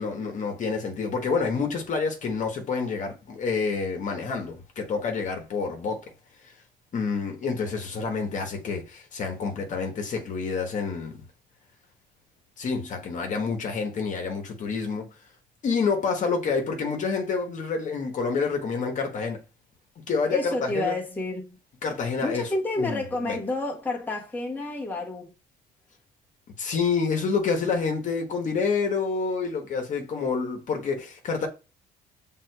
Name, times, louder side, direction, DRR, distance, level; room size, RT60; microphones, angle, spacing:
voice 1, 0.0-6.0 6.9-11.2 12.6-15.1 15.6-19.4 20.1-20.9 21.8-22.5 22.8-23.4 26.6-31.5, left 5 dB, 50° left, 1.2 m, -28 dB
voice 2, 20.3-21.6 22.2-25.3, left 2 dB, 10° left, 1.1 m, -30 dB
6.3 x 3.5 x 2.3 m
cardioid pair, 110°, 17 cm